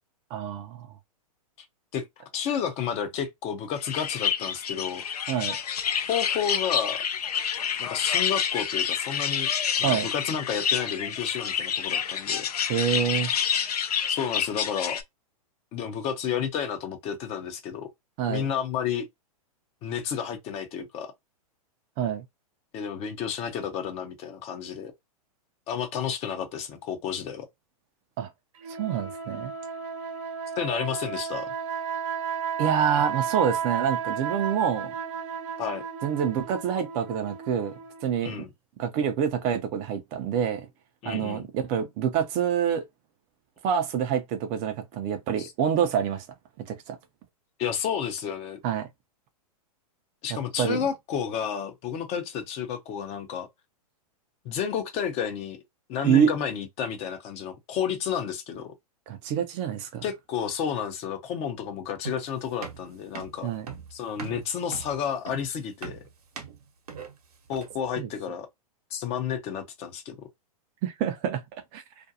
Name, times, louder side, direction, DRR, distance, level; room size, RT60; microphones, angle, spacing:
voice 1, 0.3-0.9 5.3-5.6 9.8-10.1 12.7-13.3 18.2-18.4 22.0-22.2 28.2-28.3 28.7-29.5 32.6-34.9 36.0-37.7 38.0-38.4 38.8-40.7 41.0-42.8 43.6-46.3 46.6-47.0 48.6-48.9 50.3-50.8 56.0-56.3 59.1-60.0 63.4-63.7 68.0-68.1 70.8-71.4 71.7-71.8, right 8 dB, 35° right, 0.5 m, -27 dB
voice 2, 2.3-5.0 6.1-7.0 7.8-9.5 9.8-12.4 14.1-15.0 15.7-17.9 18.3-19.1 19.8-21.1 22.7-24.9 25.7-27.5 30.6-31.5 35.6-35.8 38.2-38.5 41.0-41.5 45.4-45.5 47.6-48.6 50.2-53.5 54.4-55.6 55.9-58.7 60.0-63.5 63.9-66.0 67.5-68.5 68.9-70.3, left 8 dB, 35° left, 0.7 m, -31 dB
sound 1, 3.8-15.0, left 8 dB, 80° left, 0.5 m, -28 dB
sound 2, 28.6-38.3, right 7 dB, 50° right, 0.9 m, -33 dB
sound 3, 62.0-67.9, right 6 dB, 70° right, 1.0 m, -41 dB
2.5 x 2.2 x 2.6 m
hypercardioid pair, 120°, 19 cm